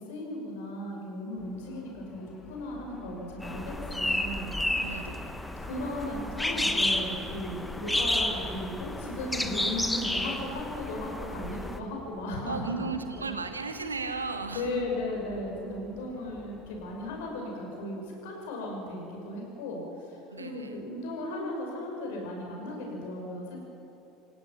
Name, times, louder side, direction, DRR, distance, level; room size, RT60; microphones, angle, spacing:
voice 1, 0.1-4.5 5.6-12.9 13.2-13.3 14.5-19.8 20.4-23.6, left 1 dB, 65° left, 0 dB, 5.8 m, -36 dB
sound 1, 1.4-17.3, left 3 dB, 30° left, 2.5 m, -50 dB
sound 2, 3.4-11.8, left 1 dB, 5° left, 1.4 m, -31 dB
voice 2, 4.8-5.3 12.4-14.8 20.3-20.8, right 4 dB, 85° right, 8 dB, 1.3 m, -35 dB
27.5 x 16.0 x 6.0 m, 3.0 s
figure-of-eight pair, 70°, 0 cm